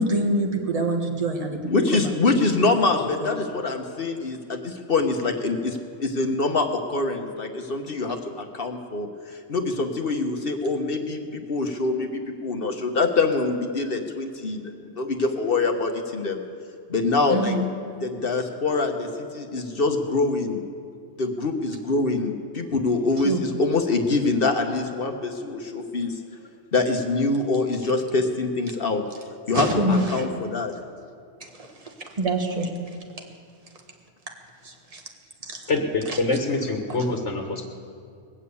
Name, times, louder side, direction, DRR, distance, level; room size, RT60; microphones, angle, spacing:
voice 1, 0.0-2.1 3.2-3.3 17.3-17.7 23.2-23.4 29.5-30.3 31.5-32.7 34.6-35.0 35.4-35.6 36.1-36.2, right 1 dB, 30° right, 2 dB, 1.6 m, -26 dB
voice 2, 1.7-16.4 16.9-17.6 18.0-19.1 19.3-20.6 21.2-26.2 26.7-29.0 29.5-30.7, left 3 dB, 55° left, 4 dB, 1.2 m, -25 dB
voice 3, 35.7-37.6, left 2 dB, 75° left, 2 dB, 1.6 m, -25 dB
21.0 x 7.5 x 8.4 m, 2.3 s
omnidirectional pair, 1.2 m